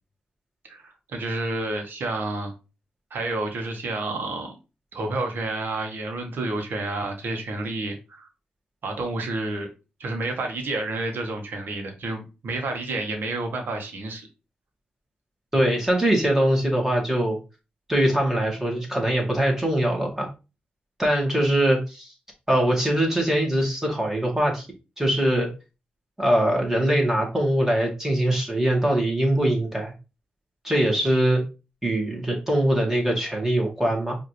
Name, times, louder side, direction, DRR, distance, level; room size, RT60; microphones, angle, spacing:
voice 1, 0.6-2.5 3.1-4.5 4.9-8.3 8.8-9.7 10.0-14.3, right 2 dB, 75° right, 4 dB, 1.2 m, -30 dB
voice 2, 15.5-17.4 17.9-20.3 21.0-22.1 22.5-24.7 25.0-25.5 26.2-29.9 30.6-31.4 31.8-34.2, right 1 dB, 10° right, -1 dB, 2.0 m, -22 dB
4.8 x 2.9 x 3.1 m, 0.30 s
cardioid pair, 60°, 3 cm